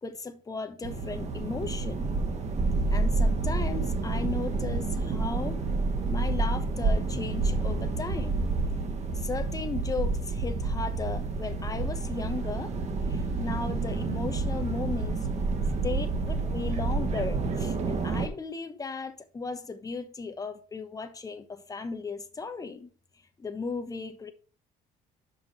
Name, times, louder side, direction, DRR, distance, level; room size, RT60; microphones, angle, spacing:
voice 1, 0.0-2.1 2.9-5.6 6.1-8.5 9.1-12.7 13.1-15.3 15.8-22.9 23.4-24.3, left 4 dB, 20° left, 1.1 m, -36 dB
sound 1, 0.8-18.3, right 3 dB, 40° right, 1.6 m, -29 dB
6.1 x 5.8 x 5.6 m
cardioid pair, 110°, 17 cm